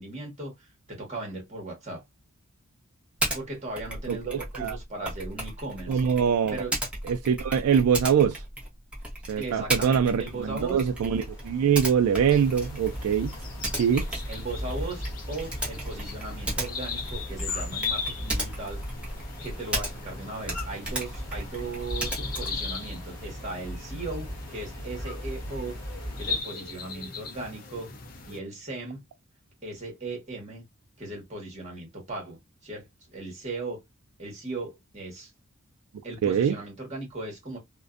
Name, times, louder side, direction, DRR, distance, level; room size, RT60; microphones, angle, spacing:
voice 1, 0.0-2.0 3.3-6.0 6.5-6.7 9.4-10.8 13.6-13.8 14.3-18.8 19.4-25.8 26.2-27.9 28.3-29.0 29.6-30.6 31.0-32.4 32.6-33.8 34.2-35.3 36.0-37.6, right 2 dB, 30° right, 1.2 m, -37 dB
Typing, 3.2-3.4 3.7-20.2 20.4-22.7, right 1 dB, 5° right, 0.7 m, -35 dB
voice 2, 4.1-4.8 5.9-6.5 7.1-8.4 9.3-13.4 13.8-14.2 36.2-36.6, right 7 dB, 85° right, 0.3 m, -24 dB
sound 1, 10.2-26.4, equal, 15° left, 1.3 m, -39 dB
sound 2, 12.3-28.4, left 5 dB, 40° left, 0.5 m, -39 dB
2.5 x 2.2 x 2.4 m
head